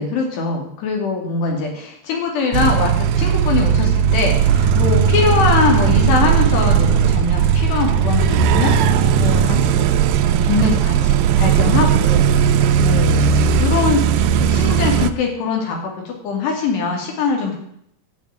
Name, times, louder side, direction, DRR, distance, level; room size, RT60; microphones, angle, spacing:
voice 1, 0.0-10.0 10.3-17.6, left 4 dB, 85° left, 1 dB, 4.8 m, -22 dB
sound 1, 2.5-15.1, right 7 dB, 85° right, 2.1 m, -16 dB
11.5 x 7.3 x 8.9 m, 0.70 s
omnidirectional pair, 4.7 m